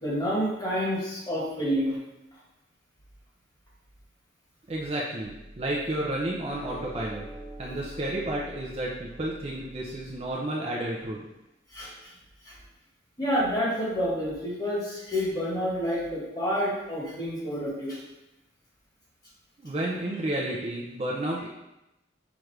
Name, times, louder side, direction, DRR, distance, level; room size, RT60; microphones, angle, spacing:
voice 1, 0.0-2.0 11.7-12.1 12.4-12.6 13.2-18.0, equal, 20° left, -6 dB, 1.3 m, -29 dB
voice 2, 4.7-7.2 7.6-11.3 19.6-21.5, right 1 dB, 30° right, -3 dB, 0.5 m, -31 dB
sound 1, 5.2-10.3, right 1 dB, 5° right, 0.9 m, -45 dB
5.8 x 2.5 x 3.3 m, 0.94 s
head